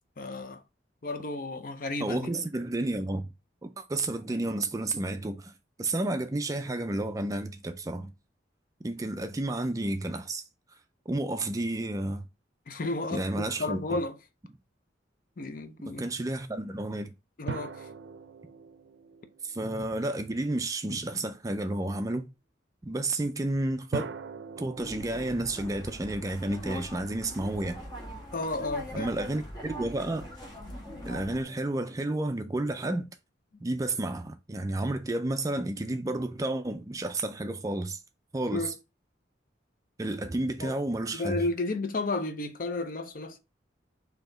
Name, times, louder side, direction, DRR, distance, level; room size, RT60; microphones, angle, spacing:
voice 1, 0.2-0.6 1.0-2.3 12.7-14.2 15.4-16.0 17.4-17.9 28.3-29.1 38.5-38.7 40.6-40.7 41.1-43.4, left 2 dB, 50° left, 0.5 m, -32 dB
voice 2, 2.0-3.3 3.6-5.5 5.8-8.1 8.8-10.4 11.1-12.3 13.1-14.0 15.9-17.1 19.4-22.3 22.8-24.1 24.6-27.8 28.9-30.3 31.0-33.1 33.6-38.0 38.3-38.7 40.0-41.4, right 2 dB, 20° right, 0.4 m, -31 dB
sound 1, 17.5-20.3 23.9-27.3, right 5 dB, 75° right, 0.5 m, -42 dB
sound 2, 24.8-31.4, equal, 25° left, 1.4 m, -42 dB
4.2 x 2.8 x 3.7 m
head